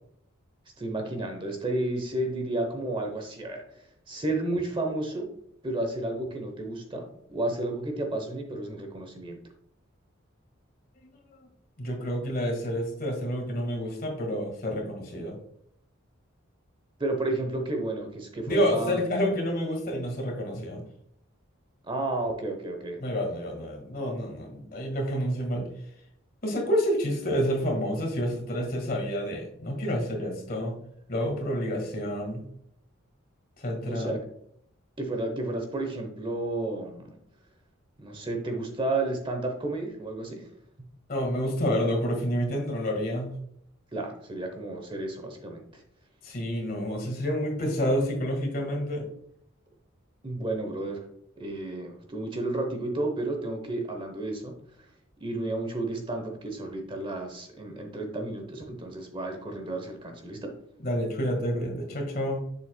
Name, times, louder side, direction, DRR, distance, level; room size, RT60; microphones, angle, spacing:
voice 1, 0.8-5.3 5.6-9.4 17.0-19.0 21.9-23.0 33.9-34.2 35.0-37.1 38.0-40.5 43.9-45.8 50.2-51.0 51.4-54.5 55.2-60.5, right 2 dB, 25° right, 4 dB, 0.8 m, -32 dB
voice 2, 11.8-15.4 18.5-20.8 23.0-25.7 26.4-30.8 31.1-32.4 33.6-34.1 41.1-43.4 46.2-49.1 60.8-62.4, equal, 45° left, 2 dB, 1.7 m, -29 dB
7.0 x 6.9 x 2.2 m, 0.69 s
head